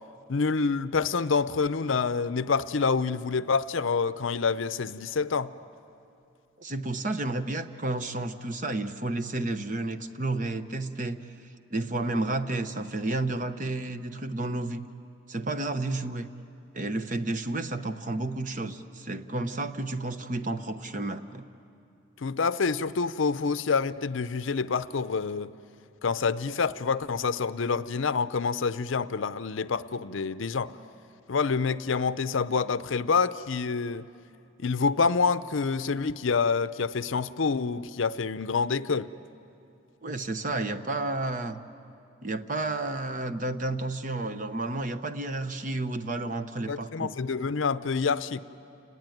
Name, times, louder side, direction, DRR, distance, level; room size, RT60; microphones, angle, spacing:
voice 1, 0.3-5.5 22.2-25.5 26.0-30.7 31.3-34.1 34.6-39.1 46.7-48.4, left 5 dB, 70° left, 0.6 m, -27 dB
voice 2, 6.6-11.2 11.7-14.8 15.3-16.3 16.7-21.4 40.0-41.6 42.2-47.1, right 2 dB, 40° right, 0.9 m, -31 dB
30.0 x 19.5 x 9.2 m
head